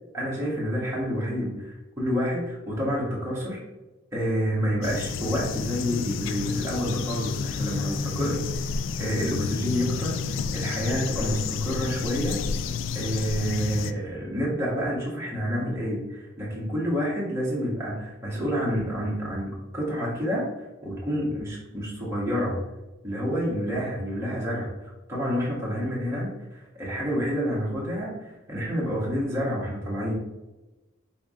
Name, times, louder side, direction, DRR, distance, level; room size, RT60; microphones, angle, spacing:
voice 1, 0.1-3.6 4.1-8.4 9.0-12.4 12.9-22.6 23.0-24.7 25.1-30.1, equal, 15° right, -6 dB, 1.3 m, -28 dB
sound 1, 4.8-13.9, left 5 dB, 80° left, 0.3 m, -30 dB
4.2 x 3.5 x 3.6 m, 1.1 s
head